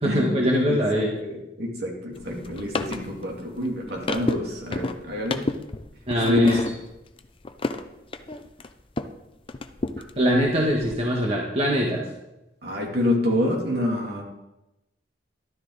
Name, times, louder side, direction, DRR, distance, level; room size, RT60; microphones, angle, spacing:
voice 1, 0.0-1.1 6.1-6.6 10.2-12.0, equal, 35° right, -2 dB, 1.7 m, -22 dB
voice 2, 0.7-5.5 6.3-6.6 12.6-14.2, left 1 dB, 60° right, -1 dB, 3.0 m, -26 dB
sound 1, 2.1-9.2 9.5-11.0, left 2 dB, 30° left, 0.6 m, -32 dB
13.0 x 12.5 x 4.1 m, 0.94 s
head